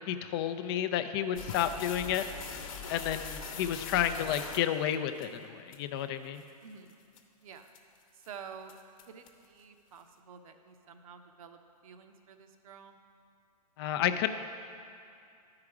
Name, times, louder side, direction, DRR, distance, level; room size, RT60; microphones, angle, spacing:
voice 1, 0.1-2.3 2.9-6.4 13.8-14.3, left 10 dB, 40° left, 9 dB, 0.4 m, -31 dB
sound 1, 1.4-5.3 5.7-5.8 6.4-6.5 6.9-7.2 7.7-8.0 8.2-8.3 8.7-9.5, left 5 dB, 55° left, 1.0 m, -42 dB
voice 2, 6.6-7.0 7.4-7.7 8.1-8.7 9.1-13.0, right 6 dB, 60° right, 7 dB, 0.8 m, -50 dB
11.5 x 4.9 x 4.8 m, 2.5 s
hypercardioid pair, 120°, 21 cm